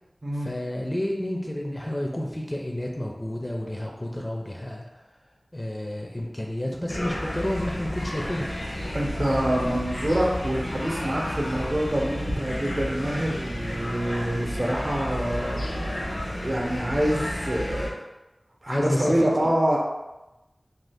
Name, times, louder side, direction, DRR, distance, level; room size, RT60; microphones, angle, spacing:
voice 1, 0.4-4.8 5.5-8.5 18.7-19.5, left 1 dB, 20° left, 0 dB, 0.4 m, -30 dB
sound 1, 6.9-17.9, left 1 dB, 85° left, 0.6 m, -31 dB
voice 2, 8.9-18.0 18.6-19.8, right 1 dB, 55° right, -2 dB, 0.7 m, -26 dB
2.6 x 2.3 x 3.4 m, 1.0 s
wide cardioid pair, 55°, 0 cm